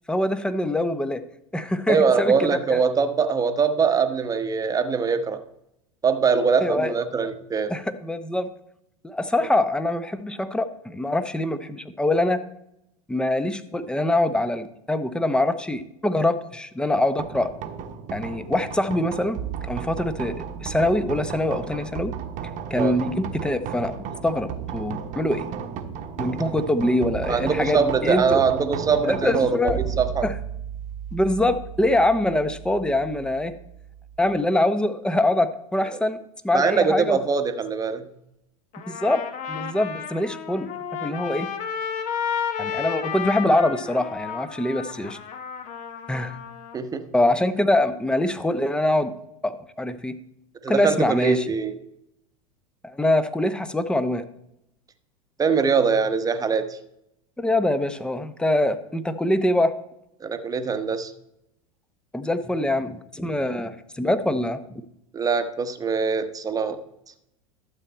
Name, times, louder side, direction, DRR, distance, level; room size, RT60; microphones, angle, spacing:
voice 1, 0.1-1.2 1.5-2.8 6.6-6.9 7.7-8.5 9.0-12.4 13.1-17.5 18.1-19.4 19.6-22.1 22.7-23.9 24.2-25.5 26.2-28.4 29.0-29.8 30.2-30.3 31.1-33.6 34.2-36.2 36.4-37.2 38.9-39.2 39.5-40.7 41.0-41.5 42.6-45.2 46.1-46.4 47.1-49.1 49.4-50.2 50.7-51.5 52.8-54.2 57.4-59.7 62.1-64.8, left 1 dB, 5° left, 11 dB, 0.8 m, -24 dB
voice 2, 1.9-5.4 6.0-7.7 22.8-23.0 27.3-30.3 36.5-38.1 46.7-47.0 50.6-51.8 55.4-56.8 60.2-61.1 65.1-66.8, right 5 dB, 20° right, 9 dB, 1.0 m, -22 dB
sound 1, 17.2-34.4, right 8 dB, 40° right, 1.1 m, -34 dB
Trumpet, 38.7-46.8, left 7 dB, 40° left, 1.2 m, -32 dB
12.5 x 7.5 x 4.4 m, 0.81 s
hypercardioid pair, 90°, 19 cm